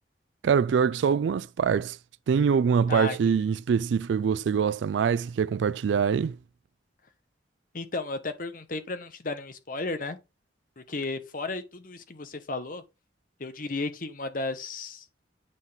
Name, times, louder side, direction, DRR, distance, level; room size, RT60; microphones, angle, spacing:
voice 1, 0.4-2.0 2.3-6.4, right 6 dB, 85° right, 0.3 m, -24 dB
voice 2, 7.7-10.2 10.8-12.8 13.4-15.1, left 3 dB, 50° left, 1.2 m, -34 dB
9.2 x 4.0 x 3.6 m
head